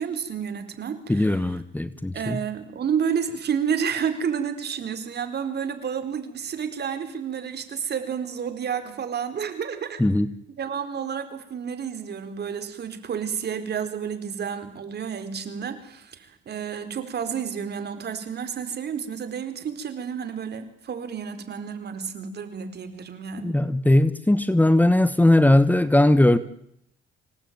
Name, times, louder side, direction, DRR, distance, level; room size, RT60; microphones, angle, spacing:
voice 1, 0.0-1.4 2.1-10.0 10.6-23.5, right 7 dB, 55° right, 9 dB, 4.3 m, -30 dB
voice 2, 1.1-2.4 10.0-10.3 23.4-26.4, left 1 dB, 10° left, 14 dB, 1.3 m, -19 dB
26.5 x 18.0 x 9.4 m, 0.74 s
cardioid pair, 90°, 20 cm